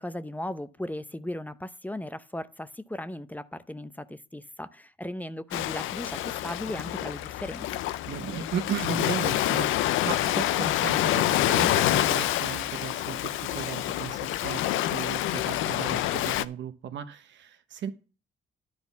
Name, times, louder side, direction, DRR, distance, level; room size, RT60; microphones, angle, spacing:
voice 1, 0.0-7.7, left 1 dB, 10° left, 0.6 m, -37 dB
Ocean, 5.5-16.4, left 14 dB, 90° left, 0.5 m, -27 dB
voice 2, 8.1-17.9, right 8 dB, 70° right, 1.0 m, -36 dB
10.5 x 4.2 x 7.0 m
cardioid pair, 90°, 20 cm